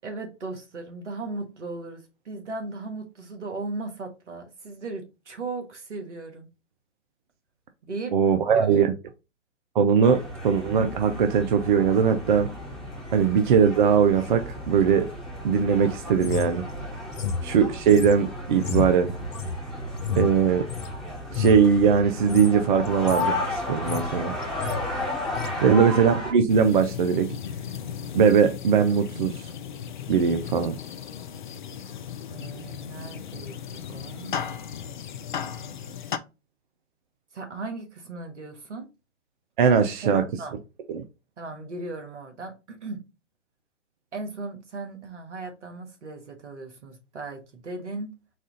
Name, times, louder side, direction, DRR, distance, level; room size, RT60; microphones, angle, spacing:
voice 1, 0.0-6.5 7.8-8.2 8.6-8.9 17.1-17.3 25.6-25.8 32.3-34.3 37.3-38.9 40.0-40.6 41.4-43.0 44.1-48.1, right 3 dB, 70° right, 1.4 m, -37 dB
voice 2, 8.1-8.9 9.8-12.5 13.1-15.1 15.4-16.6 17.4-19.1 20.2-20.7 21.3-24.4 25.6-27.4 28.1-29.5 30.1-30.8 39.6-40.2 40.9-41.0, right 6 dB, 40° right, 0.5 m, -20 dB
sound 1, 10.0-26.3, left 1 dB, ahead, 1.1 m, -34 dB
sound 2, 16.2-20.9 21.3-21.7 22.2-22.5 22.8-23.3 23.6-24.2 24.4-24.8 25.3-25.5, left 6 dB, 75° left, 0.8 m, -31 dB
sound 3, 26.5-36.2, left 8 dB, 40° left, 0.4 m, -36 dB
4.2 x 2.4 x 3.7 m
figure-of-eight pair, 120°, 37 cm